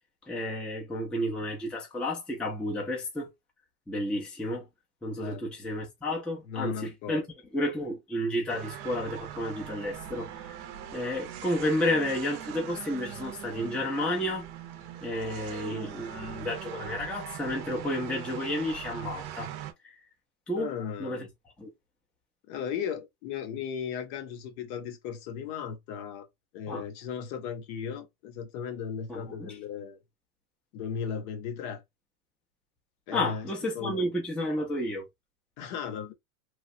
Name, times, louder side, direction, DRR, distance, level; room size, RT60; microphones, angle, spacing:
voice 1, 0.3-3.3 3.9-4.7 5.0-7.2 7.5-10.3 10.9-14.5 15.0-19.5 19.8-19.9 20.5-20.7 21.0-21.2 21.6-21.7 26.7-26.8 29.1-29.6 33.1-35.1, left 1 dB, ahead, 0.5 m, -31 dB
voice 2, 5.2-5.5 6.5-7.2 20.6-21.3 22.5-26.3 26.5-30.0 30.7-31.8 33.1-33.5 33.7-34.1 35.6-36.1, left 7 dB, 50° left, 0.8 m, -36 dB
sound 1, 8.5-19.7, right 10 dB, 45° right, 0.6 m, -41 dB
3.1 x 2.3 x 2.6 m
supercardioid pair, 130°, 46 cm